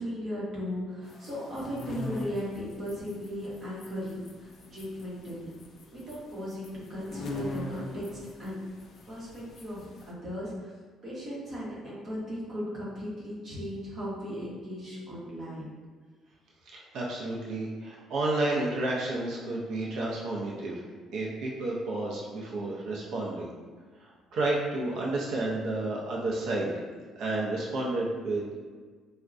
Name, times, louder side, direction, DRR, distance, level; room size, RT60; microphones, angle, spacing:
voice 1, 0.0-5.5 5.9-8.6 9.1-10.7 11.0-15.7, equal, 35° right, -7 dB, 1.0 m, -37 dB
sound 1, 1.0-10.1, left 2 dB, 40° left, 0.3 m, -42 dB
voice 2, 16.7-20.8 21.1-23.5 24.0-26.7 27.2-28.5, right 2 dB, 65° right, -3 dB, 0.5 m, -31 dB
4.4 x 2.1 x 2.5 m, 1.5 s
cardioid pair, 160°, 0 cm